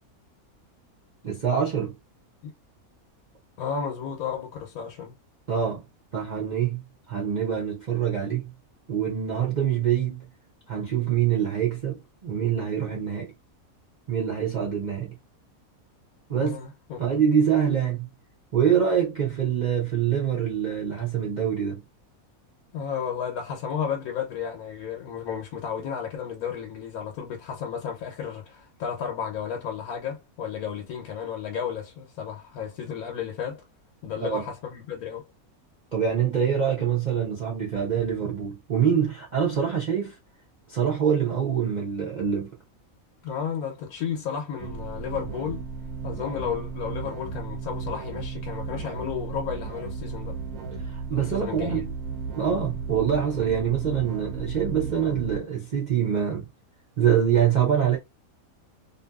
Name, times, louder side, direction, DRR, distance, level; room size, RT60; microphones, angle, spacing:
voice 1, 1.2-2.0 5.5-5.8 6.1-6.8 7.1-8.5 8.9-10.3 10.7-13.3 14.1-15.2 16.3-16.6 17.0-18.1 18.5-21.8 34.2-34.4 35.9-40.2 40.7-42.5 50.8-51.9 52.4-56.5 57.0-58.0, right 8 dB, 45° right, 0.6 m, -25 dB
voice 2, 3.6-5.1 16.4-17.0 22.7-33.6 34.0-35.3 43.2-45.7 46.0-50.4 51.1-51.9, left 7 dB, 80° left, 1.1 m, -33 dB
sound 1, 44.6-55.4, right 5 dB, 80° right, 1.1 m, -34 dB
2.6 x 2.6 x 2.2 m
omnidirectional pair, 1.5 m